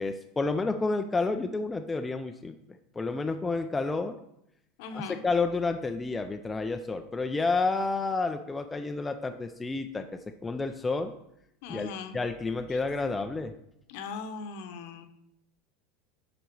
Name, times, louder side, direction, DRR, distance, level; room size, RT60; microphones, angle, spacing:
voice 1, 0.0-2.5 3.0-4.1 4.9-10.1 10.4-11.1 11.7-11.9 12.1-13.5, left 3 dB, 10° left, 6 dB, 0.3 m, -30 dB
voice 2, 4.8-5.2 11.6-12.1 12.7-12.8 13.9-15.1, left 5 dB, 55° left, 8 dB, 0.9 m, -39 dB
10.0 x 4.0 x 4.6 m, 0.79 s
supercardioid pair, 165°, 0 cm